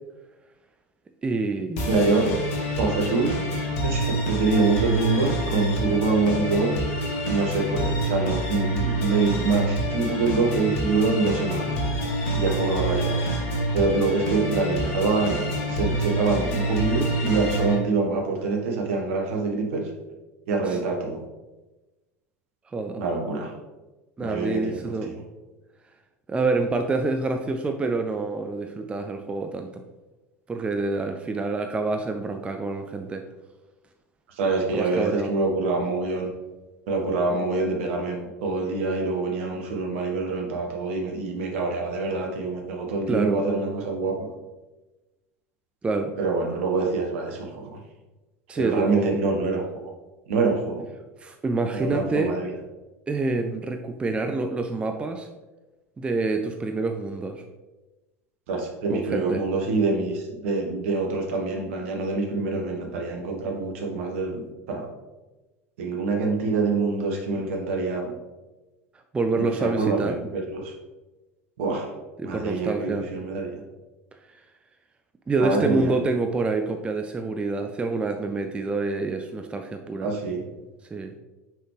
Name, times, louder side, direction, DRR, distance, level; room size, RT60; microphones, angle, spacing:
voice 1, 1.2-1.9 20.7-20.8 22.7-23.0 24.2-25.1 26.3-29.8 30.5-33.2 34.7-35.3 43.1-43.4 45.8-46.1 48.5-49.2 51.2-52.3 53.1-55.3 56.0-57.4 58.9-59.4 69.1-70.2 72.2-73.1 75.3-80.1 80.9-81.1, right 3 dB, 15° right, 6 dB, 0.4 m, -27 dB
sound 1, 1.8-17.7, right 1 dB, 55° left, 1.3 m, -27 dB
voice 2, 1.9-2.3 2.7-3.4 3.8-6.7 7.3-11.8 12.3-13.2 13.7-19.9 20.5-21.2 23.0-23.5 24.2-25.2 34.3-36.3 36.9-44.3 46.2-47.8 48.5-49.9 50.3-50.8 51.7-52.5 58.5-64.9 65.8-68.1 69.3-70.7 71.6-71.9 72.2-73.6 75.4-76.0 80.0-80.4, right 3 dB, 60° right, 2 dB, 1.1 m, -25 dB
5.9 x 5.2 x 3.2 m, 1.1 s
figure-of-eight pair, 75°, 8 cm